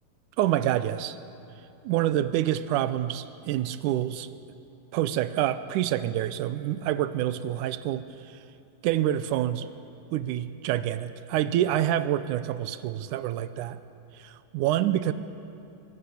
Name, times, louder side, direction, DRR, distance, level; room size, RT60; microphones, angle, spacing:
voice 1, 0.4-1.2 1.8-4.3 4.9-8.4 8.8-9.7 10.1-13.8 14.2-15.1, right 12 dB, 80° right, 12 dB, 1.9 m, -27 dB
23.5 x 22.5 x 7.2 m, 2.7 s
omnidirectional pair, 4.3 m